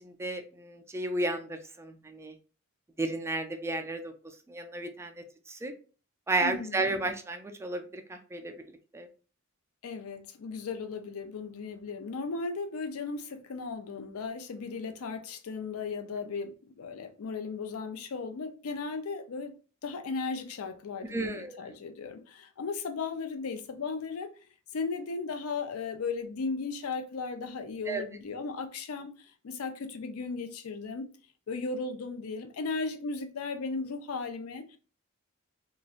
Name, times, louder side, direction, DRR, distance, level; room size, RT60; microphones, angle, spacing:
voice 1, 0.0-2.3 3.0-4.1 4.5-5.1 5.5-5.7 6.3-8.5 8.9-9.1 21.1-21.5 27.9-28.0, right 2 dB, 10° right, 0.3 m, -33 dB
voice 2, 6.4-7.0 9.8-16.5 16.8-19.5 19.8-24.3 24.7-31.0 31.5-34.8, left 4 dB, 75° left, 0.4 m, -36 dB
3.0 x 2.4 x 2.4 m
head